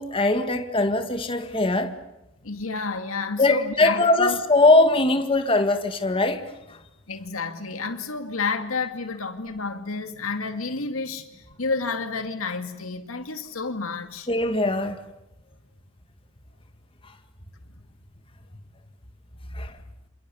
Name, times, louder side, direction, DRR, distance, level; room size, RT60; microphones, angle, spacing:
voice 1, 0.0-1.9 3.4-6.8 14.3-15.0 19.5-19.7, left 2 dB, 25° left, 2.0 m, -21 dB
voice 2, 2.4-4.4 7.1-14.3, left 4 dB, 90° left, 2.3 m, -30 dB
28.0 x 27.5 x 7.1 m
head